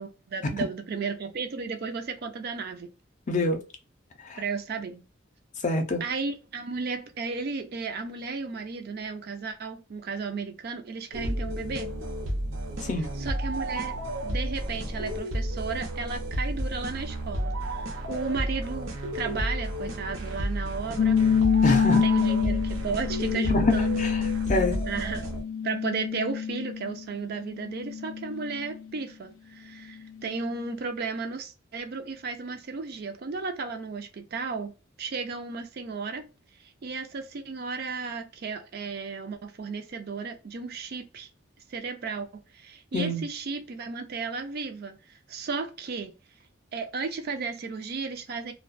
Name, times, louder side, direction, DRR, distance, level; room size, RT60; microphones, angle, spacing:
voice 1, 0.0-2.9 4.4-5.1 6.0-11.9 13.2-14.0 14.2-21.2 22.0-24.0 24.9-25.3 25.6-34.7 35.0-36.3 36.8-41.3 41.7-42.3 42.5-45.0 45.3-46.1 46.7-48.5, right 4 dB, 50° right, 0.4 m, -34 dB
voice 2, 3.3-3.6 4.3-4.4 5.6-6.0 12.8-13.1 21.6-22.0 23.5-24.2 24.5-24.8 42.9-43.2, left 2 dB, 40° left, 0.5 m, -26 dB
sound 1, 11.1-25.4, right 1 dB, 85° right, 0.7 m, -32 dB
sound 2, 21.0-27.0 27.5-28.8, left 7 dB, 90° left, 0.4 m, -26 dB
2.4 x 2.2 x 2.4 m
head